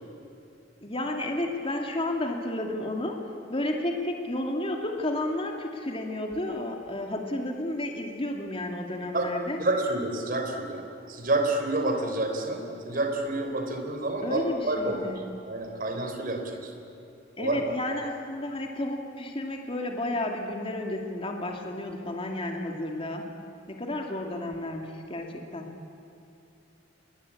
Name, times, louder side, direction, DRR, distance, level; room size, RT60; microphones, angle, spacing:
voice 1, 0.8-3.2 3.5-9.6 14.2-15.2 17.4-23.3 23.7-25.7, left 1 dB, 30° left, 2 dB, 2.4 m, -32 dB
voice 2, 9.6-16.8 17.4-17.6, right 2 dB, 45° right, 4 dB, 3.6 m, -29 dB
28.5 x 22.5 x 8.5 m, 2.7 s
head